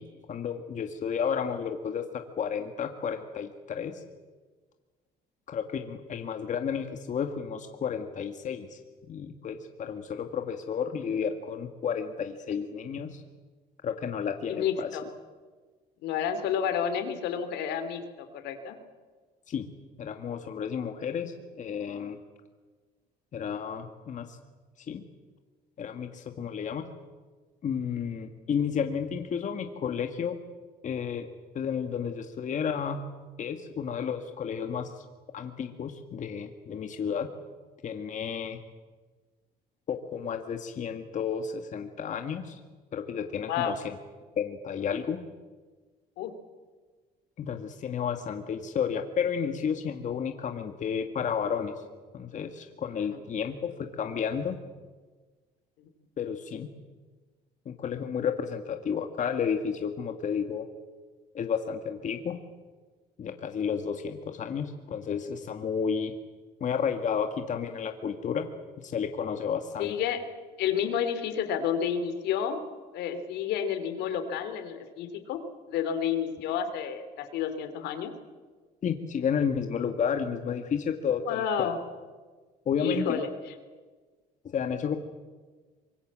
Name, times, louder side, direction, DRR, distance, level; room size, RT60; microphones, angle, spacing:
voice 1, 0.0-4.0 5.5-8.8 9.1-13.2 13.8-14.9 19.5-19.7 20.0-22.2 23.3-24.4 24.9-25.0 25.8-26.9 27.6-30.4 30.8-31.3 31.5-33.0 33.4-35.0 35.3-37.3 37.8-38.6 39.9-42.6 42.9-44.0 44.4-45.2 47.4-51.8 52.1-54.6 56.2-56.7 57.7-60.7 61.3-62.4 63.2-66.1 66.6-68.5 68.8-69.9 78.8-81.7 82.7-83.2 84.5-85.0, left 7 dB, 45° left, 6 dB, 1.8 m, -32 dB
voice 2, 14.5-15.0 16.0-18.8 43.5-43.7 46.2-46.3 53.0-53.1 55.8-55.9 69.8-70.2 70.6-72.6 72.9-75.4 75.7-78.1 81.2-81.8 82.8-83.3, left 8 dB, 85° left, 9 dB, 3.2 m, -30 dB
24.5 x 22.0 x 7.5 m, 1.4 s
cardioid pair, 110°, 17 cm